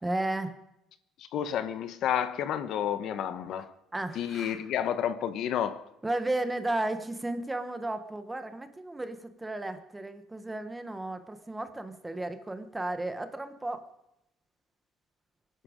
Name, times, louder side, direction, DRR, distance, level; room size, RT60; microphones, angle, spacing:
voice 1, 0.0-0.6 3.9-4.6 6.0-13.8, right 2 dB, 10° right, 1.1 m, -34 dB
voice 2, 1.2-3.7 4.1-5.8, left 9 dB, 50° left, 1.0 m, -30 dB
25.5 x 11.0 x 5.1 m
cardioid pair, 165°, 0 cm